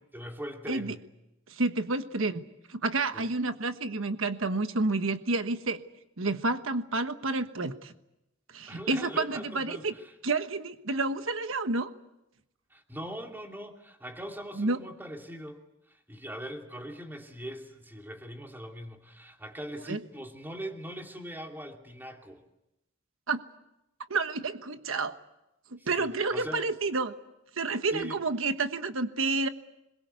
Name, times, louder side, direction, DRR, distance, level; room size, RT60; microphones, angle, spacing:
voice 1, 0.1-1.0 3.1-3.3 8.7-10.1 12.7-22.4 25.8-26.7 27.7-28.2, equal, 10° right, 3 dB, 2.7 m, -41 dB
voice 2, 1.5-2.4 2.7-5.8 6.2-7.9 8.5-9.9 10.2-11.9 14.6-14.8 19.9-20.0 23.3-23.4 24.1-25.2 25.7-27.1 27.6-29.5, right 3 dB, 80° right, 9 dB, 1.3 m, -29 dB
27.0 x 22.0 x 8.2 m, 0.89 s
head